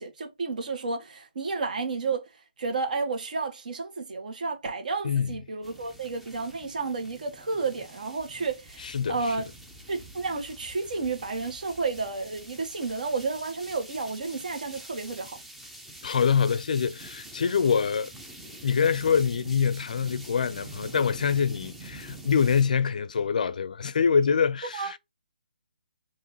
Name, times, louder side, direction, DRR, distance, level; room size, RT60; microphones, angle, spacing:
voice 1, 0.0-2.2 2.6-9.5 9.9-15.4 24.7-24.9, right 4 dB, 55° right, 1.8 m, -31 dB
sound 1, 5.6-22.6, right 1 dB, ahead, 0.6 m, -46 dB
voice 2, 8.8-9.4 16.0-18.1 18.6-25.0, left 6 dB, 55° left, 0.5 m, -25 dB
4.7 x 3.0 x 3.0 m
hypercardioid pair, 165°, 5 cm